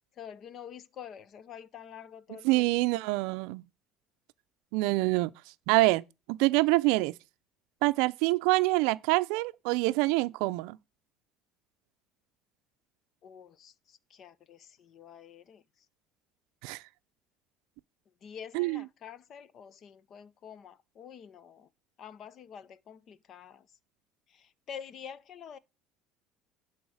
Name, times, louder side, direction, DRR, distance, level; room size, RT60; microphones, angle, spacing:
voice 1, 0.2-2.7 13.2-15.6 18.2-21.7 22.0-23.7 24.3-25.6, left 8 dB, 40° left, 0.6 m, -47 dB
voice 2, 2.4-3.6 4.7-5.3 5.7-6.0 6.3-7.1 7.8-10.8 16.6-16.8 18.5-18.8, right 21 dB, 80° right, 0.4 m, -26 dB
11.5 x 4.1 x 6.3 m
cardioid pair, 155°, 0 cm